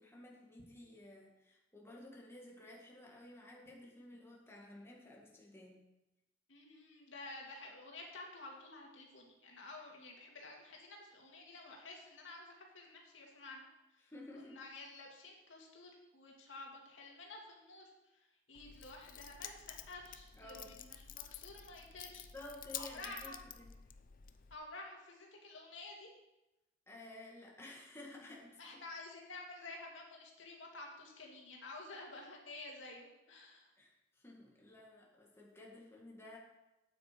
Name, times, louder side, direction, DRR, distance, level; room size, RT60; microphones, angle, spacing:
voice 1, 0.0-5.8 14.0-14.6 20.3-20.7 22.3-23.7 26.9-28.8 33.8-36.4, left 1 dB, 15° left, -2 dB, 2.1 m, -53 dB
voice 2, 6.5-13.7 13.9-14.0 14.3-17.8 18.5-22.3 22.7-23.4 24.5-26.1 28.6-33.7, left 2 dB, 80° left, -1 dB, 2.4 m, -51 dB
Keys jangling, 18.5-24.6, left 10 dB, 50° left, 0.6 m, -50 dB
9.1 x 8.4 x 6.0 m, 0.96 s
head